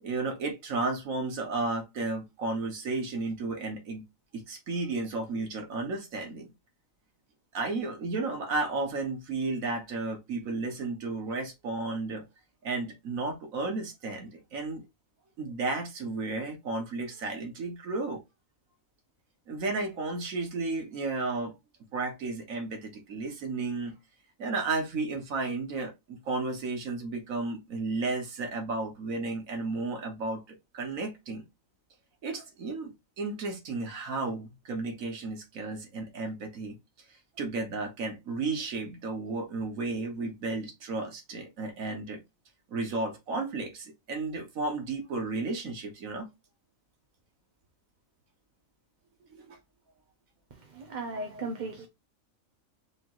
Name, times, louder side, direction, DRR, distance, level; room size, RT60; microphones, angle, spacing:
voice 1, 0.0-4.1 4.3-6.5 7.5-12.2 12.6-14.8 15.4-18.2 19.5-21.6 21.9-23.9 24.4-31.4 32.2-36.8 37.4-42.2 42.7-46.3 49.3-49.6, right 3 dB, 85° right, 1.6 m, -33 dB
voice 2, 50.5-51.9, right 3 dB, 45° right, 0.6 m, -37 dB
5.0 x 3.0 x 2.5 m
omnidirectional pair, 1.4 m